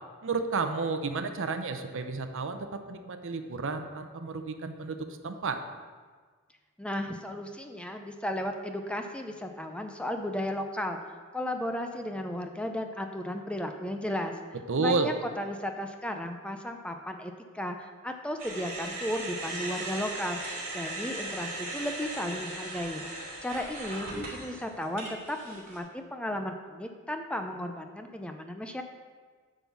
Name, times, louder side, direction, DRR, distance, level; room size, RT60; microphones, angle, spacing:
voice 1, 0.2-5.6 14.7-15.1, right 4 dB, 65° right, 8 dB, 0.7 m, -31 dB
voice 2, 6.8-11.0 11.3-14.3 14.8-20.4 20.7-23.0 23.4-28.8, left 1 dB, 5° left, 5 dB, 0.5 m, -34 dB
sound 1, 18.4-25.8, right 2 dB, 40° right, 2.6 m, -38 dB
10.0 x 3.9 x 7.0 m, 1.5 s
head